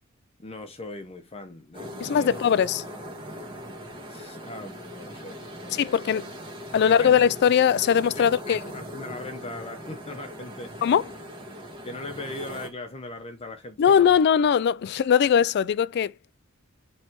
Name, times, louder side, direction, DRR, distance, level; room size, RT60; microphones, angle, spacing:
voice 1, 0.4-2.3 4.0-6.1 6.7-7.1 8.4-10.7 11.8-14.1, left 2 dB, 30° left, 0.8 m, -39 dB
sound 1, 1.7-12.7, equal, 25° right, 1.5 m, -40 dB
voice 2, 2.0-2.8 5.7-6.3 6.7-8.6 10.8-11.1 13.8-16.1, left 8 dB, 50° left, 0.3 m, -20 dB
7.1 x 3.2 x 4.5 m
head